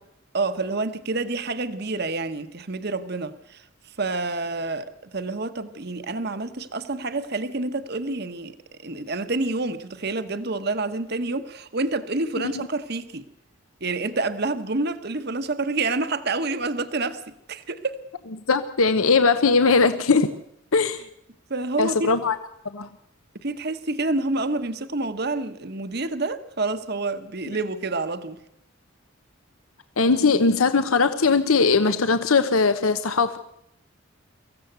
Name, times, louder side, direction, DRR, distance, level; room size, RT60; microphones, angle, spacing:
voice 1, 0.3-3.6 4.0-13.2 13.8-17.2 17.5-18.0 21.5-22.1 23.4-28.4, right 3 dB, 50° right, 1.1 m, -28 dB
voice 2, 18.5-20.3 20.7-21.0 21.8-22.3 22.7-22.9 30.0-33.4, left 4 dB, 90° left, 0.9 m, -20 dB
23.5 x 15.0 x 8.0 m
head